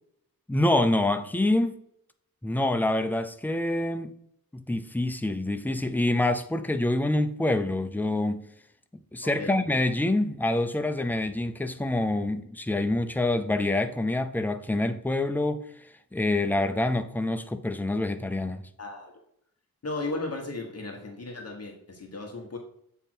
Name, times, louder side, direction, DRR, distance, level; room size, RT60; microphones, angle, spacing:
voice 1, 0.5-1.8 2.4-4.1 4.5-8.5 8.9-15.6 16.1-18.6, left 2 dB, 5° left, 0.4 m, -26 dB
voice 2, 9.2-9.5 18.8-19.1 19.8-22.6, left 2 dB, 45° left, 1.1 m, -35 dB
7.3 x 3.4 x 4.4 m
wide cardioid pair, 120°, 36 cm